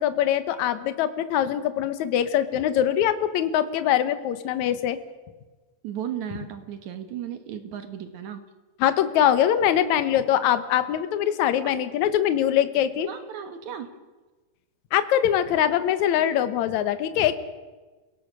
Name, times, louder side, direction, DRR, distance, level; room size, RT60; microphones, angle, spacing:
voice 1, 0.0-5.0 8.8-13.1 14.9-17.3, left 10 dB, 65° left, 11 dB, 2.2 m, -23 dB
voice 2, 5.8-8.4 13.1-13.9, right 9 dB, 65° right, 8 dB, 2.4 m, -35 dB
28.5 x 17.5 x 6.2 m, 1.3 s
omnidirectional pair, 4.1 m